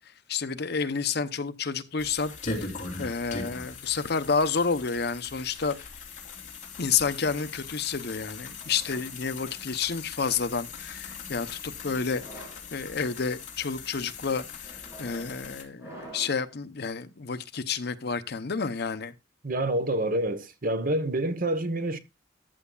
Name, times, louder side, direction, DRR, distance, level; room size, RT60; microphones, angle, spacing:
voice 1, 0.3-2.7 3.0-5.8 6.8-19.1, left 5 dB, 60° left, 0.8 m, -30 dB
sound 1, 2.0-15.6, left 4 dB, 40° left, 3.2 m, -40 dB
sound 2, 8.6-10.0 10.8-11.2 12.0-12.7 13.4-13.7 14.6-16.5, right 1 dB, 15° right, 5.9 m, -48 dB
voice 2, 19.4-22.0, right 1 dB, 50° right, 1.1 m, -27 dB
14.0 x 8.1 x 2.3 m
head